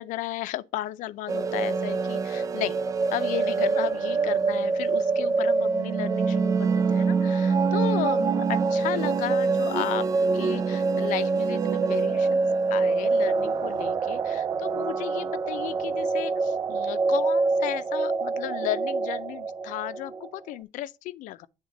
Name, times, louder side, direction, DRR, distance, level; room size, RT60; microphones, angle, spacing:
voice 1, 0.0-2.8 3.1-10.1 10.3-21.5, left 15 dB, 85° left, 0.5 m, -34 dB
sound 1, 1.3-20.4, right 4 dB, 25° right, 0.3 m, -25 dB
9.5 x 3.6 x 5.1 m
cardioid pair, 165°, 13 cm